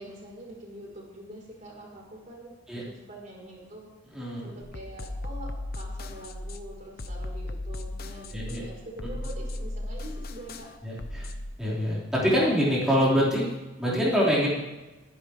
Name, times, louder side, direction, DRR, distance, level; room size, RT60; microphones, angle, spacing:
voice 1, 0.0-3.9 4.4-11.0 14.4-14.5, right 1 dB, 40° right, -2 dB, 4.4 m, -44 dB
voice 2, 4.1-4.5 8.3-8.6 10.8-11.3 11.6-14.5, equal, 5° right, -8 dB, 5.0 m, -25 dB
sound 1, 4.6-11.5, left 1 dB, 55° left, 0.9 m, -36 dB
22.5 x 10.5 x 3.5 m, 1.1 s
head